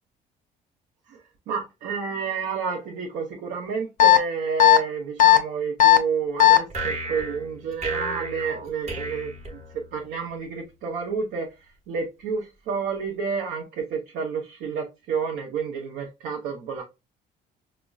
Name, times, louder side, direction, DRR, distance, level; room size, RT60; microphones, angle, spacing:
voice 1, 1.5-9.6 9.9-16.8, right 5 dB, 80° right, 0.7 m, -30 dB
sound 1, 4.0-4.2 4.6-4.8 5.2-5.4 5.8-6.0 6.4-6.6, left 13 dB, 50° left, 0.4 m, -13 dB
sound 2, 6.7-10.1, right 3 dB, 40° right, 1.0 m, -33 dB
4.9 x 2.1 x 2.3 m
cardioid pair, 110°, 17 cm